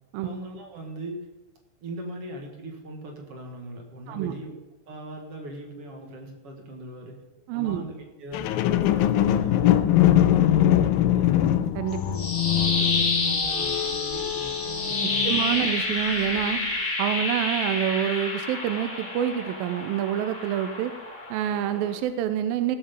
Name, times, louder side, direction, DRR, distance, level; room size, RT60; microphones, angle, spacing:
voice 1, 0.2-1.3 1.8-4.5 4.9-7.2 7.5-11.6 12.1-15.4, right 1 dB, 50° right, 1 dB, 2.0 m, -40 dB
voice 2, 7.5-7.8 11.8-12.2 15.0-16.6 17.0-20.9 21.3-22.8, right 10 dB, 80° right, 10 dB, 2.2 m, -27 dB
sound 1, 8.3-15.8 16.3-16.4, left 12 dB, 80° left, 2.2 m, -23 dB
sound 2, 11.9-22.0, left 2 dB, 25° left, 1.5 m, -29 dB
16.5 x 7.1 x 5.2 m, 1.0 s
omnidirectional pair, 4.6 m